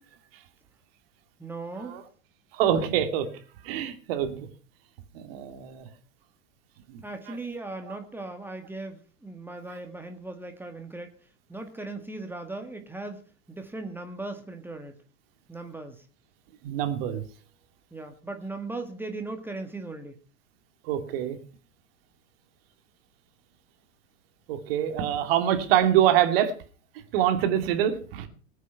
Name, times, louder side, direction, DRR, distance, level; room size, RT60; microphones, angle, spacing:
voice 1, 1.4-2.0 7.0-11.1 11.5-15.0 15.5-16.0 17.9-20.2, right 2 dB, 5° right, 5 dB, 1.7 m, -38 dB
voice 2, 2.5-4.5 5.1-5.9 6.9-7.0 7.3-7.4 7.8-8.0 9.7-9.8 16.6-17.2 20.8-21.4 24.5-26.5 27.1-28.3, right 10 dB, 50° right, 8 dB, 2.6 m, -25 dB
20.0 x 8.2 x 5.8 m, 0.38 s
figure-of-eight pair, 90°, 37 cm